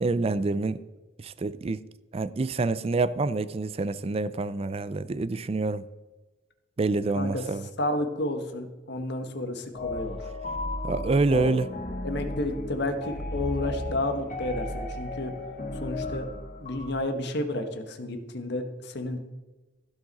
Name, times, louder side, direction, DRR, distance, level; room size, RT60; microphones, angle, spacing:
voice 1, 0.0-0.8 1.2-1.8 2.1-5.8 6.8-7.7 10.8-11.7, right 3 dB, 30° right, 0.4 m, -27 dB
voice 2, 7.8-10.2 11.3-11.5 12.0-15.3 15.8-16.3 16.6-19.2, left 1 dB, 60° left, 1.2 m, -31 dB
sound 1, 9.7-17.0, left 1 dB, 40° left, 1.4 m, -34 dB
15.5 x 5.3 x 4.1 m
head